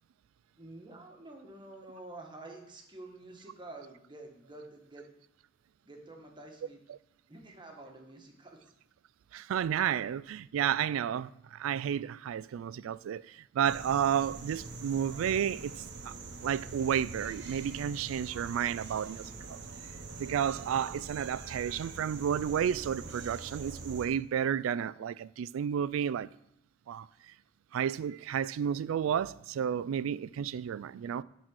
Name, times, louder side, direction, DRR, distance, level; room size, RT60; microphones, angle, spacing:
voice 1, 0.6-5.1 5.9-6.8 7.3-8.6, right 2 dB, 25° right, 1.3 m, -49 dB
voice 2, 9.3-16.1 16.4-19.6 20.2-26.3 26.9-27.3 27.7-31.2, right 8 dB, 80° right, 0.3 m, -32 dB
sound 1, 13.6-24.1, right 3 dB, 60° right, 1.0 m, -44 dB
10.5 x 4.1 x 6.3 m
head